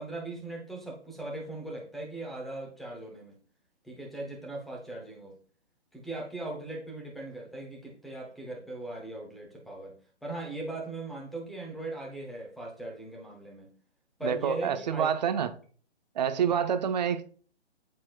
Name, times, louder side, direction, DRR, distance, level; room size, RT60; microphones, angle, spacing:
voice 1, 0.0-3.4 3.8-5.4 5.9-13.7 14.2-15.1 16.5-16.6, right 2 dB, ahead, 0.8 m, -39 dB
voice 2, 14.2-15.5 16.2-17.2, right 8 dB, 40° right, 0.8 m, -27 dB
12.0 x 4.2 x 2.4 m
figure-of-eight pair, 135°, 34 cm